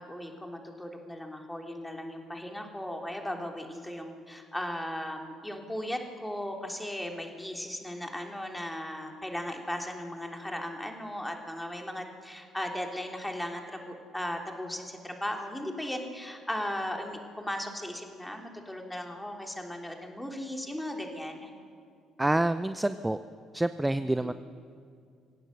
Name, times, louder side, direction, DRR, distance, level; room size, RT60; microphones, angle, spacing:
voice 1, 0.0-21.5 24.2-24.3, left 1 dB, 5° left, 2 dB, 3.3 m, -37 dB
voice 2, 22.2-23.2 23.5-24.3, right 1 dB, 10° right, 12 dB, 0.7 m, -27 dB
25.0 x 17.0 x 6.5 m, 2.3 s
hypercardioid pair, 50°, 0 cm